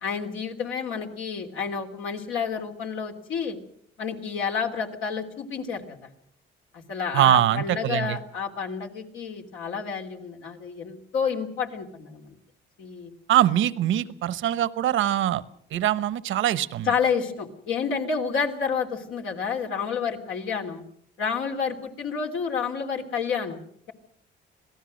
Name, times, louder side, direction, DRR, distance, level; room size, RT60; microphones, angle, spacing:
voice 1, 0.0-3.6 4.0-6.0 6.7-12.4 12.8-13.1 16.9-20.8 21.2-23.6, left 6 dB, 85° left, 3 dB, 3.1 m, -29 dB
voice 2, 7.1-8.2 13.3-15.4 15.7-16.9, right 12 dB, 80° right, 16 dB, 1.0 m, -23 dB
26.5 x 18.0 x 6.4 m, 0.66 s
cardioid pair, 90°, 20 cm